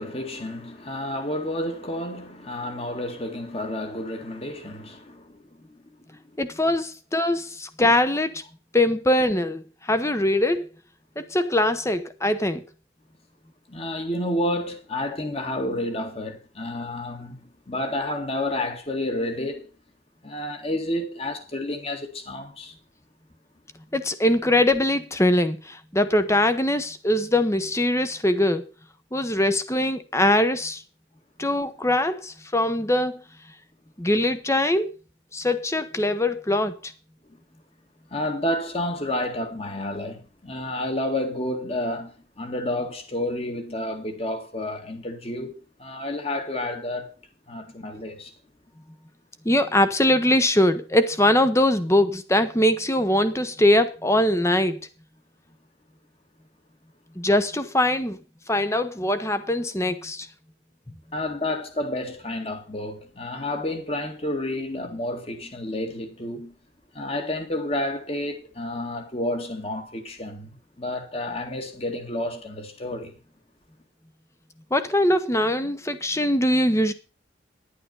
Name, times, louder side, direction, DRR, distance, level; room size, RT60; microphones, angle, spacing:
voice 1, 0.0-5.6 13.7-19.7 20.2-22.7 38.1-47.1 47.5-48.3 61.1-66.5 66.9-73.1, left 1 dB, 30° left, 1.9 m, -30 dB
voice 2, 6.4-8.4 8.7-10.7 11.2-12.6 23.9-28.6 29.1-30.8 31.4-33.2 34.0-34.9 35.3-36.9 49.4-54.8 57.2-58.2 58.5-60.3 74.7-76.9, left 1 dB, 15° left, 0.9 m, -22 dB
11.0 x 8.6 x 5.4 m
head